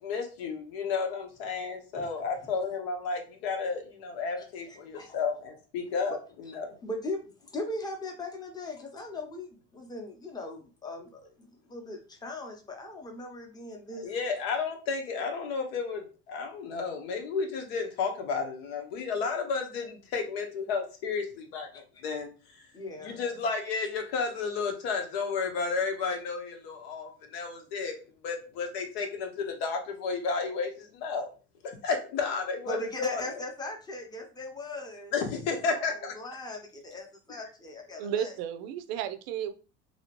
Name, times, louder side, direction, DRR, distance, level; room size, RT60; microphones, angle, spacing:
voice 1, 0.0-6.8 14.0-22.3 23.0-28.0 28.2-31.3 31.6-33.2 35.1-36.1, left 5 dB, 90° left, 3 dB, 1.0 m, -32 dB
voice 2, 6.8-14.1 22.7-23.2 32.7-35.1 35.8-38.3, left 1 dB, 15° left, 3 dB, 0.6 m, -39 dB
voice 3, 38.0-39.5, right 9 dB, 80° right, 12 dB, 0.5 m, -33 dB
2.9 x 2.8 x 2.9 m, 0.35 s
cardioid pair, 135°, 30 cm